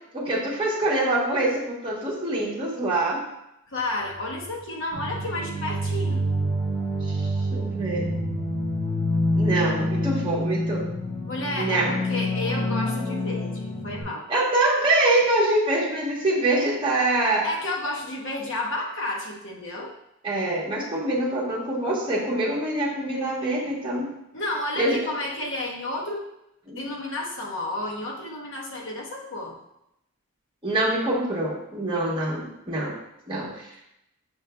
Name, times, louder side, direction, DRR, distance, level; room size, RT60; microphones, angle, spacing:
voice 1, 0.1-3.2 7.0-7.1 7.5-8.1 9.3-10.9 11.6-12.0 14.3-17.5 20.2-24.1 24.8-25.0 26.7-26.8 30.6-32.9 33.3-33.7, right 2 dB, 25° right, -5 dB, 1.1 m, -24 dB
voice 2, 3.7-6.2 11.3-14.3 17.4-19.9 24.3-26.3 26.7-29.6, left 2 dB, 55° left, -1 dB, 0.9 m, -31 dB
sound 1, 4.9-14.0, equal, 15° left, 1.4 m, -27 dB
6.4 x 3.6 x 2.2 m, 0.82 s
head